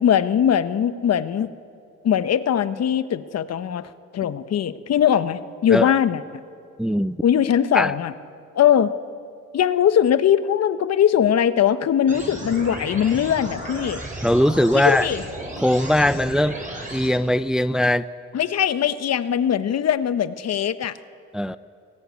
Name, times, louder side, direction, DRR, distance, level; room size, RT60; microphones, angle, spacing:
voice 1, 0.0-1.5 2.0-6.2 7.2-8.1 8.5-8.9 9.5-14.0 14.7-15.2 18.3-20.9, left 9 dB, 55° left, 12 dB, 1.0 m, -20 dB
voice 2, 6.8-7.2 7.7-7.9 14.2-15.1 15.6-16.6 16.9-18.1 21.3-21.6, left 1 dB, ahead, 14 dB, 0.5 m, -20 dB
sound 1, 12.1-17.1, right 1 dB, 25° right, 7.9 m, -34 dB
24.5 x 17.0 x 9.7 m, 2.5 s
cardioid pair, 90°, 30 cm